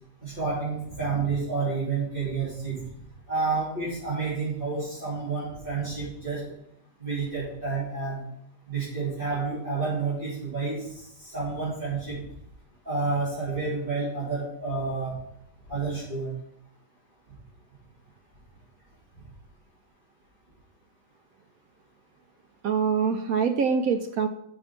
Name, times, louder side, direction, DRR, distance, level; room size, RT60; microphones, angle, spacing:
voice 1, 0.2-2.7 3.3-6.4 7.0-8.2 8.7-12.2 12.8-15.1 15.7-16.3, right 4 dB, 25° right, -12 dB, 3.3 m, -29 dB
voice 2, 22.6-24.3, right 6 dB, 80° right, 6 dB, 0.8 m, -24 dB
6.1 x 5.2 x 5.8 m, 0.75 s
omnidirectional pair, 2.1 m